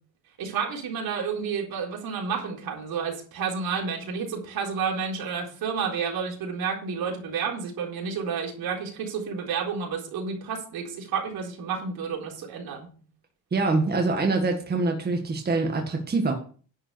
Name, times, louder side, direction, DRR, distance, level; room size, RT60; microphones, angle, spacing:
voice 1, 0.4-12.9, right 6 dB, 70° right, 0 dB, 4.0 m, -30 dB
voice 2, 13.5-16.3, right 3 dB, 25° right, 2 dB, 1.7 m, -24 dB
10.5 x 5.9 x 6.8 m, 0.41 s
cardioid pair, 130°, 38 cm